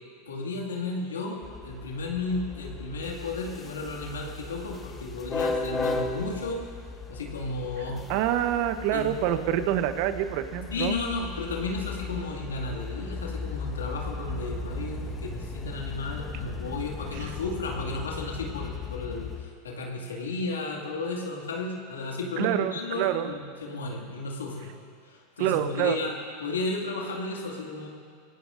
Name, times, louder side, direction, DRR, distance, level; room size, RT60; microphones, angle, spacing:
voice 1, 0.3-6.6 7.1-8.1 8.9-9.3 10.7-24.7 25.0-26.1 26.4-27.9, left 3 dB, 90° left, -1 dB, 2.2 m, -33 dB
sound 1, 1.4-19.4, left 4 dB, 25° left, 1.4 m, -36 dB
voice 2, 8.1-11.0 17.1-17.3 22.4-23.3 25.4-26.0, right 11 dB, 60° right, 10 dB, 0.9 m, -26 dB
25.5 x 17.0 x 2.6 m, 2.1 s
hypercardioid pair, 100°, 0 cm